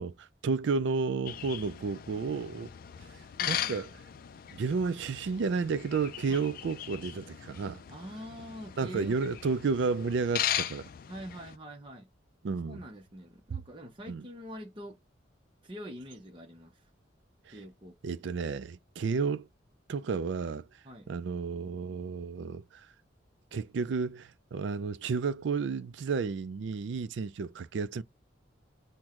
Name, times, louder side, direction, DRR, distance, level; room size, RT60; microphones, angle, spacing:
voice 1, 0.0-2.7 3.4-3.9 4.5-7.8 8.8-10.9 12.4-12.8 13.5-13.6 14.1-14.3 17.5-17.6 18.0-19.5 19.9-20.7 21.1-22.9 23.5-28.0, right 4 dB, 65° right, 0.4 m, -32 dB
sound 1, 1.3-11.6, left 10 dB, 50° left, 0.4 m, -38 dB
voice 2, 3.4-3.8 6.3-6.4 7.9-9.2 11.1-12.1 12.7-15.0 15.6-16.7 17.5-18.0 20.8-21.1, equal, 25° right, 0.7 m, -44 dB
6.1 x 2.1 x 3.6 m
head